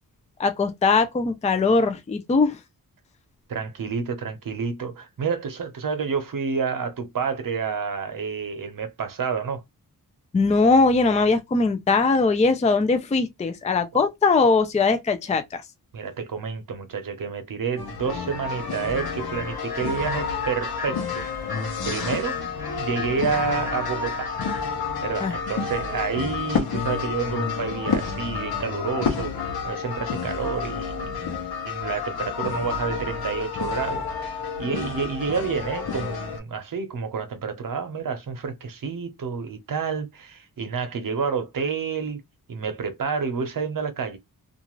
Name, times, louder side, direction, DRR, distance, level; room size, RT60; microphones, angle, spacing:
voice 1, 0.4-2.6 10.3-15.6 25.2-25.4, left 4 dB, 20° left, 0.4 m, -21 dB
voice 2, 3.5-9.6 15.9-21.6 21.8-22.4 22.7-24.3 25.0-31.3 31.6-34.0 34.6-42.2 42.5-44.2, right 5 dB, 60° right, 0.8 m, -29 dB
sound 1, 17.8-36.4, left 5 dB, 75° left, 0.8 m, -30 dB
sound 2, 18.9-24.7, left 4 dB, 10° right, 0.7 m, -38 dB
2.5 x 2.4 x 3.0 m
wide cardioid pair, 110°, 37 cm